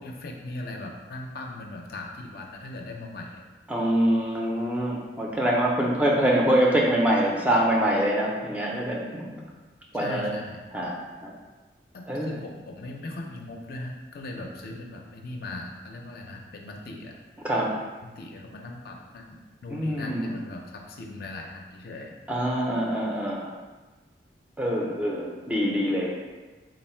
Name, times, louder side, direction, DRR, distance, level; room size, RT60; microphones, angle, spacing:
voice 1, 0.0-3.4 9.9-10.6 11.9-17.2 18.0-22.2, left 2 dB, 55° left, 1 dB, 0.4 m, -39 dB
voice 2, 3.7-9.4 9.9-10.3 10.7-10.9 11.2-11.3 12.1-12.4 17.4-17.7 19.7-20.3 22.3-23.6 24.6-26.1, right 1 dB, 10° right, -3 dB, 0.4 m, -24 dB
3.8 x 2.0 x 4.2 m, 1.3 s
head